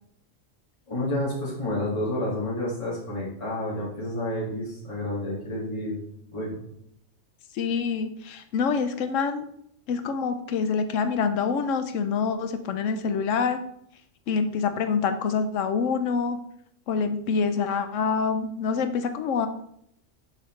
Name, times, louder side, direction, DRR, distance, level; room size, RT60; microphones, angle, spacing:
voice 1, 0.9-6.0 6.3-6.6, left 1 dB, 25° left, -9 dB, 2.2 m, -30 dB
voice 2, 7.5-9.5 9.9-13.6 14.3-16.4 16.9-19.5, left 5 dB, 80° left, 9 dB, 1.1 m, -26 dB
6.8 x 6.6 x 3.2 m, 0.71 s
omnidirectional pair, 1.3 m